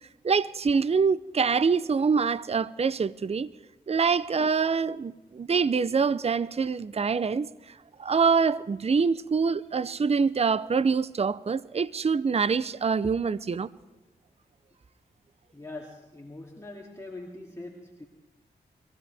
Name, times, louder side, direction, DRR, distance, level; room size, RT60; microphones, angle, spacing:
voice 1, 0.2-3.5 3.9-7.5 8.0-13.7, right 5 dB, 35° right, 0.5 m, -25 dB
voice 2, 15.5-18.0, left 2 dB, 15° left, 2.4 m, -42 dB
22.5 x 15.5 x 3.4 m
cardioid pair, 40°, 18 cm